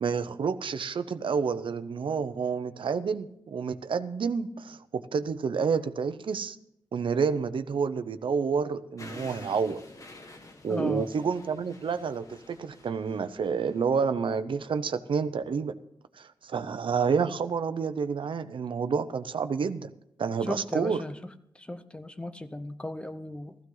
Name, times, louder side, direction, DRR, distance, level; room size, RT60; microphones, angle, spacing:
voice 1, 0.0-6.6 6.9-9.8 10.6-15.8 16.2-19.9 20.2-21.0, right 5 dB, 80° right, 11 dB, 0.8 m, -29 dB
sound 1, 9.0-14.0, left 2 dB, 40° left, 1.7 m, -49 dB
voice 2, 10.7-11.1 20.5-23.6, left 1 dB, 10° left, 10 dB, 0.8 m, -36 dB
16.0 x 14.5 x 3.9 m, 0.76 s
wide cardioid pair, 155°, 9 cm